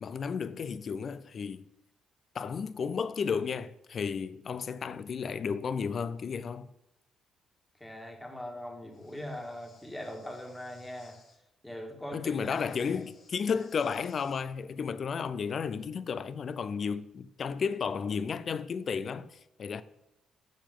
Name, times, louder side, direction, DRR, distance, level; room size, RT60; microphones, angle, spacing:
voice 1, 0.0-1.7 2.3-6.7 12.1-19.8, left 6 dB, 50° left, 0.5 m, -33 dB
voice 2, 7.8-11.2 11.6-13.1 13.5-13.6, left 1 dB, 10° left, 1.9 m, -41 dB
Breathing, 8.9-11.4 12.3-14.4, left 4 dB, 70° left, 2.0 m, -62 dB
7.4 x 6.9 x 3.8 m
cardioid pair, 90°, 0 cm